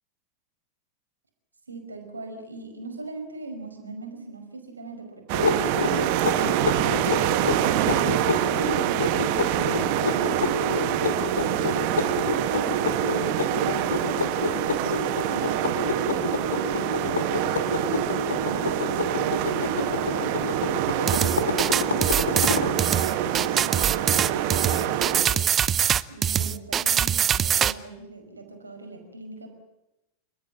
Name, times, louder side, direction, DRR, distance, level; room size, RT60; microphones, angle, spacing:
voice 1, 1.7-6.0 18.3-20.3 23.8-25.5 26.1-29.5, right 3 dB, 85° right, 4 dB, 5.3 m, -42 dB
sound 1, 5.3-22.8, left 4 dB, 75° left, 2.4 m, -29 dB
sound 2, 5.3-25.3, right 11 dB, 50° right, 1.8 m, -26 dB
sound 3, 21.1-27.7, right 9 dB, 30° right, 0.8 m, -23 dB
29.5 x 13.5 x 9.2 m, 0.96 s
figure-of-eight pair, 90°, 0 cm